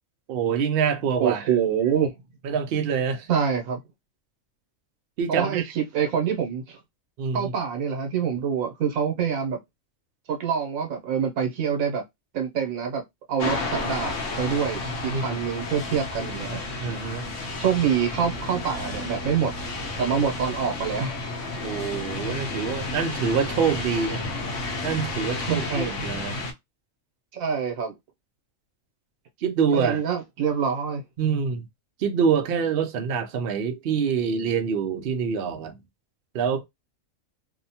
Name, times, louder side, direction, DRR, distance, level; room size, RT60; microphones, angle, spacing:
voice 1, 0.3-1.5 2.4-3.3 5.2-5.7 7.2-7.5 14.4-14.5 15.1-15.4 16.8-17.2 21.6-24.2 24.8-26.4 29.4-30.0 31.2-31.7 32.0-35.8 36.3-36.6, right 6 dB, 65° right, 0.6 m, -26 dB
voice 2, 1.2-2.2 3.3-3.8 5.3-6.8 7.3-9.6 10.3-12.0 12.3-13.0 13.3-16.6 17.6-19.5 20.0-21.2 25.5-25.9 27.3-27.9 29.7-31.0, right 7 dB, 80° right, 1.2 m, -26 dB
sound 1, 13.4-26.5, left 2 dB, 65° left, 0.9 m, -32 dB
2.7 x 2.1 x 2.7 m
omnidirectional pair, 1.4 m